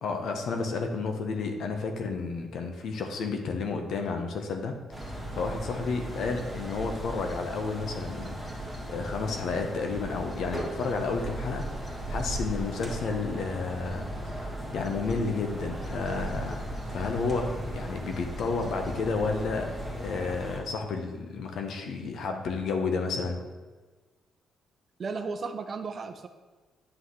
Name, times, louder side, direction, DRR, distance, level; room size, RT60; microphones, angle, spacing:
voice 1, 0.0-8.6 8.9-14.0 14.7-16.6 16.9-19.7 19.9-23.4, left 4 dB, 70° left, 4 dB, 1.0 m, -31 dB
sound 1, 4.9-20.6, right 1 dB, 15° left, 1.7 m, -37 dB
voice 2, 25.0-26.3, right 4 dB, 45° right, 7 dB, 0.6 m, -34 dB
9.5 x 5.7 x 3.2 m, 1.3 s
cardioid pair, 90°, 0 cm